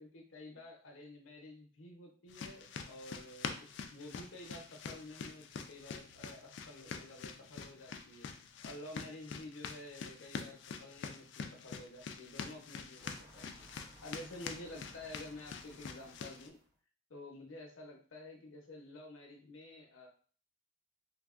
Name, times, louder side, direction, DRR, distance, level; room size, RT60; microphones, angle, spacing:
voice 1, 0.0-16.6 17.1-20.1, left 1 dB, 90° left, 1 dB, 0.7 m, -51 dB
sound 1, 2.3-16.5, left 5 dB, 65° left, 0.3 m, -46 dB
sound 2, 13.0-16.8, equal, 15° right, 0.6 m, -60 dB
3.3 x 2.0 x 2.4 m, 0.42 s
head